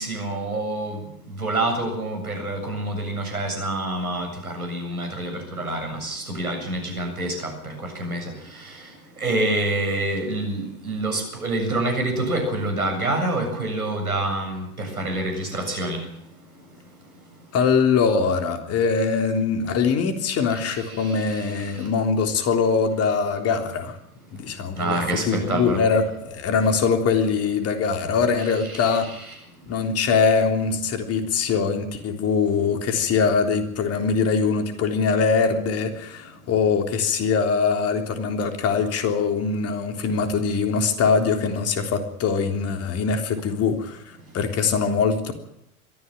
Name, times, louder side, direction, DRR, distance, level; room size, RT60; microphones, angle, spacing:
voice 1, 0.0-16.1 20.5-21.9 24.8-25.8 28.6-29.3, right 2 dB, 85° right, 4 dB, 7.4 m, -27 dB
voice 2, 17.5-24.0 24.3-25.0 25.3-29.1 29.7-44.0 44.3-45.3, left 5 dB, 35° left, 6 dB, 3.6 m, -22 dB
23.0 x 15.0 x 9.1 m, 0.76 s
figure-of-eight pair, 85°, 43 cm